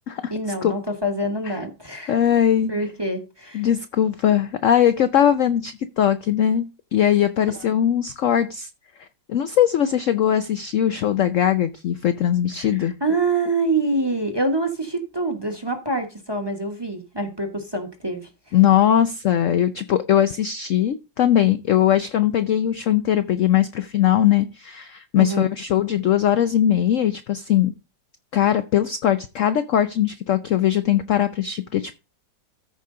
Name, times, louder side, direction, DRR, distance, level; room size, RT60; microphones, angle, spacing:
voice 1, 0.3-2.2 2.7-3.7 12.6-18.3 25.2-25.5, right 2 dB, 15° right, 1.1 m, -26 dB
voice 2, 2.1-2.7 3.5-6.7 6.9-8.7 9.3-13.0 18.5-27.7 28.3-32.0, left 10 dB, 70° left, 0.7 m, -20 dB
14.0 x 4.9 x 3.8 m
omnidirectional pair, 2.0 m